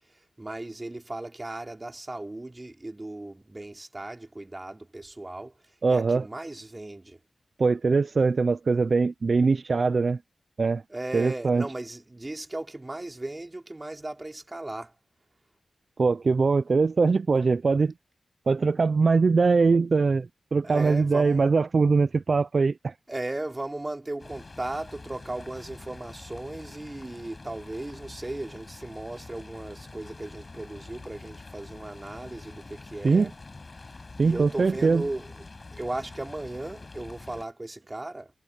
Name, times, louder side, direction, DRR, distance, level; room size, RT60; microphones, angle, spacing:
voice 1, 0.4-5.5 5.9-7.2 10.9-14.9 20.6-21.5 23.1-33.3 34.2-35.3 35.7-38.3, right 2 dB, 25° right, 4.5 m, -36 dB
voice 2, 5.8-6.3 7.6-10.2 10.6-10.8 11.1-11.6 16.0-17.9 18.5-22.9 33.0-33.3 34.2-35.1, right 4 dB, 55° right, 0.5 m, -22 dB
sound 1, 24.2-37.5, left 3 dB, 40° left, 6.8 m, -46 dB
cardioid pair, 60°, 0 cm